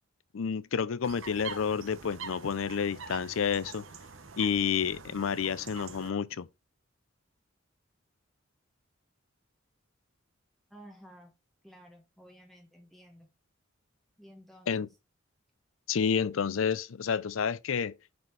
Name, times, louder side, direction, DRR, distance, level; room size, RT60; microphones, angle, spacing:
voice 1, 0.3-3.8 4.4-6.5 14.7-14.9 15.9-18.0, left 6 dB, 80° left, 0.5 m, -30 dB
sound 1, 1.0-6.1, right 5 dB, 75° right, 1.1 m, -45 dB
voice 2, 10.7-11.3 11.6-13.3 14.2-14.8, equal, ahead, 1.2 m, -53 dB
6.7 x 4.3 x 4.6 m
head